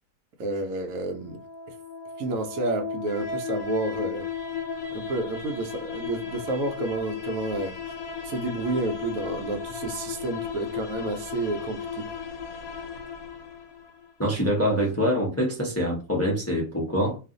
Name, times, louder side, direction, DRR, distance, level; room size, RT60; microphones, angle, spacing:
voice 1, 0.4-1.4 2.2-4.3 4.9-7.8 8.2-12.1, right 2 dB, 75° right, 1.0 m, -30 dB
sound 1, 1.1-14.1, left 6 dB, 80° left, 1.1 m, -35 dB
voice 2, 14.2-17.2, equal, 15° left, 0.6 m, -25 dB
2.4 x 2.4 x 3.8 m
omnidirectional pair, 1.5 m